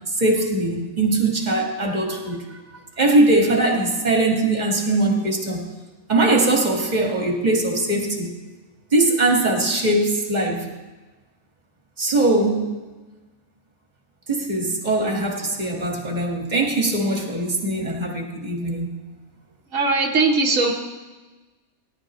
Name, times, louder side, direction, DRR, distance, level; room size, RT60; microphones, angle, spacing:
voice 1, 0.2-2.5 3.0-5.7 6.1-8.3 8.9-10.7 12.0-12.7 14.3-18.9, right 2 dB, 35° right, 1 dB, 1.8 m, -21 dB
voice 2, 19.7-20.7, right 3 dB, 90° right, -1 dB, 1.4 m, -19 dB
18.0 x 11.0 x 3.0 m, 1.2 s
omnidirectional pair, 1.3 m